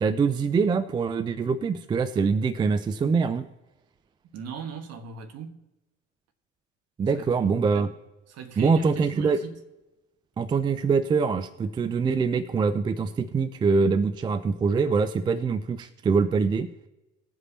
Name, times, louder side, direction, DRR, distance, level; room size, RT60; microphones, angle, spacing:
voice 1, 0.0-3.5 7.0-7.9 8.6-9.4 10.4-16.7, right 5 dB, 15° right, 0.3 m, -24 dB
voice 2, 4.3-5.6 7.1-7.3 7.7-7.9 8.3-9.6, right 6 dB, 45° right, 1.5 m, -38 dB
19.5 x 7.8 x 2.9 m
figure-of-eight pair, 65°, 37 cm